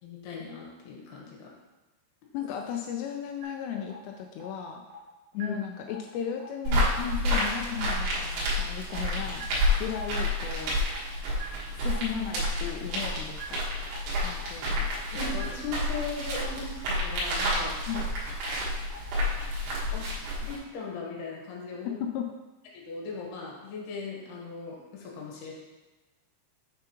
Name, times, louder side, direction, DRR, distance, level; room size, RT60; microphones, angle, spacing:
voice 1, 0.0-1.5 5.3-5.6 15.1-17.9 19.9-20.1 20.4-22.0 22.7-25.5, left 4 dB, 65° left, -2 dB, 3.1 m, -38 dB
voice 2, 2.3-4.8 5.3-9.4 9.8-10.8 11.8-13.7 14.2-14.9 17.9-18.1 21.9-22.3, left 8 dB, 85° left, 2 dB, 2.5 m, -35 dB
sound 1, 3.4-3.5 3.9-4.0 4.4-4.5 4.9-5.0 5.4-5.5 5.9-6.0 6.4-6.5 6.9-7.0 7.4-7.5 7.9-8.0 8.4-8.5 8.9-9.0 9.4-9.5 9.9-10.0 10.4-10.5 10.9-11.0 11.4-11.5 11.9-12.0 12.4-12.5 12.9-13.0 13.4-13.5 13.9-14.0 14.4-14.5 14.9-15.0 15.4-15.5 15.9-16.0 16.4-16.5 16.9-17.0 17.4-17.5 17.9-18.0 18.4-18.5 18.9-19.0, right 10 dB, 65° right, 2.3 m, -44 dB
sound 2, 6.7-20.6, left 1 dB, 85° right, 4.0 m, -29 dB
7.7 x 6.8 x 3.0 m, 1.2 s
omnidirectional pair, 5.3 m